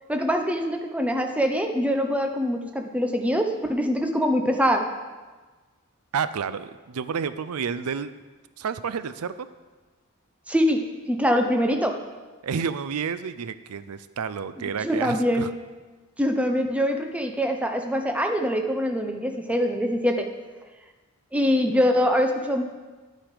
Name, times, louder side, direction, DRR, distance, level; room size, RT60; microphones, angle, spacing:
voice 1, 0.1-4.9 10.5-12.0 14.8-15.5 16.2-20.3 21.3-22.6, equal, 5° right, 4 dB, 0.8 m, -24 dB
voice 2, 6.1-8.1 8.6-9.5 12.4-15.5, right 6 dB, 90° right, 14 dB, 0.5 m, -30 dB
11.5 x 9.1 x 4.9 m, 1.3 s
head